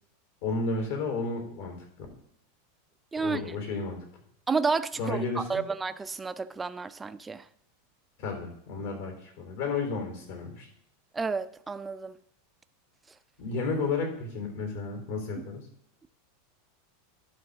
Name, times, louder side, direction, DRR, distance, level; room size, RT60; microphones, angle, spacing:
voice 1, 0.4-2.1 3.2-4.0 5.0-5.6 8.2-10.7 13.4-15.6, left 3 dB, 70° left, 3.7 m, -32 dB
voice 2, 4.5-7.4 11.1-12.2, right 4 dB, 15° right, 0.4 m, -31 dB
11.5 x 3.8 x 6.7 m
supercardioid pair, 130°, 0 cm